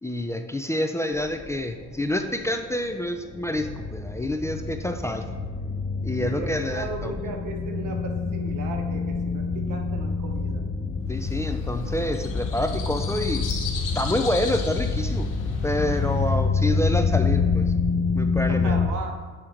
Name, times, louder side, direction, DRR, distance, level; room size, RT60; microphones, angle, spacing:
voice 1, 0.0-5.2 6.0-7.1 11.1-13.5 14.0-15.3 15.6-17.7 18.1-18.8, left 1 dB, 10° left, 6 dB, 0.3 m, -28 dB
sound 1, 1.1-18.9, left 4 dB, 30° left, 0.8 m, -27 dB
voice 2, 6.2-10.7 18.5-19.2, right 4 dB, 85° right, 3 dB, 0.9 m, -36 dB
sound 2, 11.2-16.4, left 5 dB, 85° left, 1.2 m, -38 dB
7.7 x 2.9 x 4.9 m, 1.4 s
cardioid pair, 90°, 30 cm